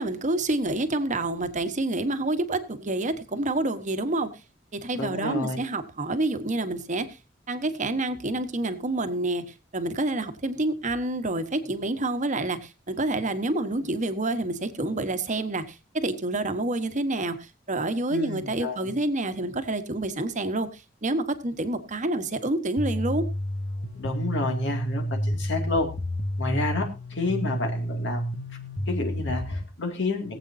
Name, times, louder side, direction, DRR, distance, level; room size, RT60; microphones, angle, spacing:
voice 1, 0.0-4.3 4.7-7.1 7.5-23.2, right 2 dB, 40° right, 9 dB, 1.2 m, -28 dB
voice 2, 4.9-5.6 18.1-18.9 23.9-25.9 26.4-28.2 28.9-30.4, left 3 dB, 65° left, 4 dB, 2.4 m, -30 dB
sound 1, 22.8-29.6, equal, 90° left, 1.6 m, -30 dB
22.5 x 8.1 x 2.7 m, 0.28 s
head